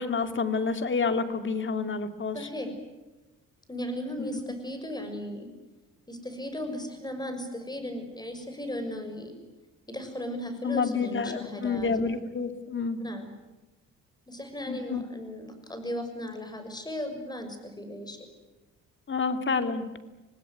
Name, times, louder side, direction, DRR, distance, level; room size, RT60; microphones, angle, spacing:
voice 1, 0.0-2.4 4.2-4.3 10.6-13.0 14.7-15.0 19.1-19.9, left 5 dB, 40° left, 8 dB, 2.7 m, -28 dB
voice 2, 2.3-2.7 3.7-5.5 6.1-9.4 9.9-11.9 13.0-13.3 14.3-18.2, left 1 dB, 15° left, 7 dB, 6.3 m, -36 dB
26.5 x 19.0 x 9.5 m, 1.1 s
cardioid pair, 90°, 30 cm